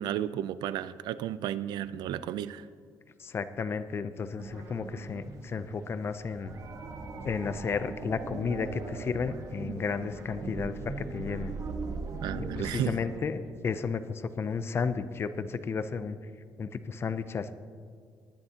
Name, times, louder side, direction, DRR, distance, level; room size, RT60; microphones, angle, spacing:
voice 1, 0.0-2.7 12.2-12.9, right 11 dB, 80° right, 15 dB, 0.4 m, -33 dB
voice 2, 3.2-6.5 7.2-11.5 12.5-16.2 16.6-17.5, left 5 dB, 35° left, 12 dB, 0.6 m, -33 dB
sound 1, 4.4-13.2, right 3 dB, 50° right, 1.4 m, -40 dB
19.0 x 10.5 x 2.9 m, 2.1 s
cardioid pair, 125°, 7 cm